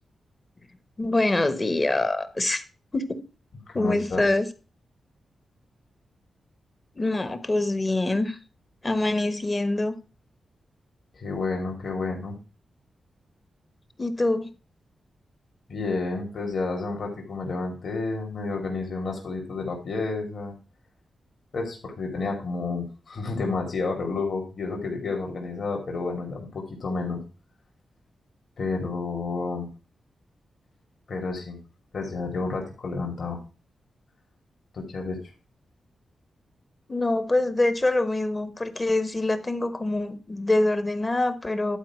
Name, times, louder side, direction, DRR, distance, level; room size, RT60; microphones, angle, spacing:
voice 1, 1.0-2.6 2.9-3.2 3.7-4.5 6.9-8.4 8.8-9.9 14.0-14.5 36.9-41.8, left 2 dB, 20° left, 1.0 m, -25 dB
voice 2, 3.7-4.3 11.2-12.4 15.7-20.5 21.5-27.2 28.6-29.7 31.1-31.6 31.9-33.4 34.7-35.2, left 3 dB, 50° left, 2.7 m, -30 dB
11.5 x 4.7 x 6.0 m
wide cardioid pair, 140°, 0 cm